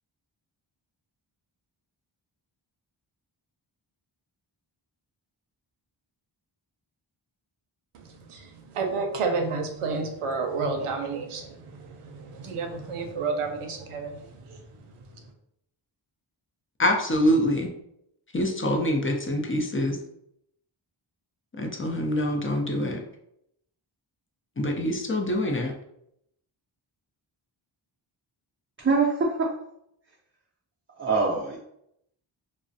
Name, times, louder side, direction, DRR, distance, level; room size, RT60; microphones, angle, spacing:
voice 1, 8.3-14.6, right 4 dB, 90° right, 4 dB, 0.5 m, -31 dB
voice 2, 16.8-17.7 18.3-20.0 21.6-23.0 24.6-25.7, left 1 dB, 25° left, 2 dB, 0.5 m, -25 dB
voice 3, 28.8-29.5 31.0-31.6, right 4 dB, 25° right, -4 dB, 0.5 m, -24 dB
2.3 x 2.0 x 2.6 m, 0.75 s
cardioid pair, 50°, 49 cm